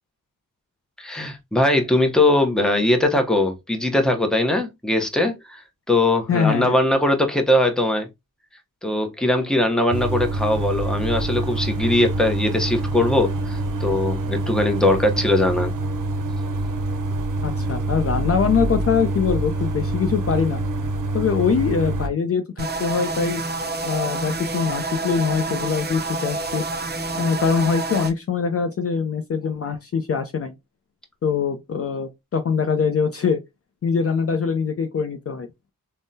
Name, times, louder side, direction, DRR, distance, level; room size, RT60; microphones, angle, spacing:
voice 1, 1.0-5.6 5.9-8.1 8.8-15.7, left 1 dB, ahead, 0.8 m, -20 dB
voice 2, 6.3-6.8 17.4-20.6 21.1-23.4 23.8-26.6 27.1-30.5 31.2-33.4 33.8-35.5, left 6 dB, 45° left, 0.5 m, -23 dB
sound 1, 9.9-22.1, right 2 dB, 65° right, 0.7 m, -26 dB
sound 2, 22.6-28.1, right 3 dB, 30° right, 0.6 m, -28 dB
3.5 x 2.2 x 2.6 m
cardioid pair, 60°, 34 cm